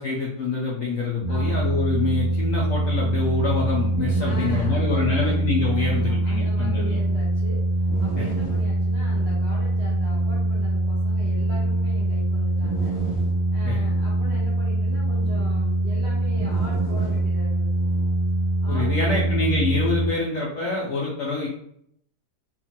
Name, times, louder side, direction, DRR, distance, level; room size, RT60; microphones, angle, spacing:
voice 1, 0.0-7.0 8.2-8.3 13.6-13.9 18.7-21.5, left 3 dB, 75° left, -3 dB, 0.7 m, -26 dB
sound 1, 1.2-20.1, right 2 dB, 55° left, 1.1 m, -23 dB
voice 2, 1.3-1.7 4.2-5.4 5.8-13.0 13.5-17.8 18.6-19.2, right 1 dB, 65° right, -6 dB, 0.6 m, -40 dB
2.9 x 2.4 x 2.8 m, 0.72 s
omnidirectional pair, 1.9 m